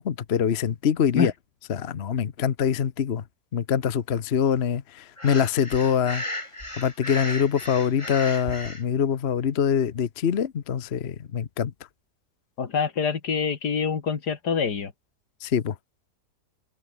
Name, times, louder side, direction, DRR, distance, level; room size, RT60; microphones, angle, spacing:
voice 1, 0.0-1.3 1.7-3.2 3.5-6.2 6.8-11.7 15.4-15.7, left 8 dB, 45° left, 1.1 m, -24 dB
Breathing, 5.2-8.8, left 1 dB, 15° left, 7.1 m, -35 dB
voice 2, 12.6-14.9, left 6 dB, 75° left, 2.5 m, -25 dB
open air
omnidirectional pair, 1.8 m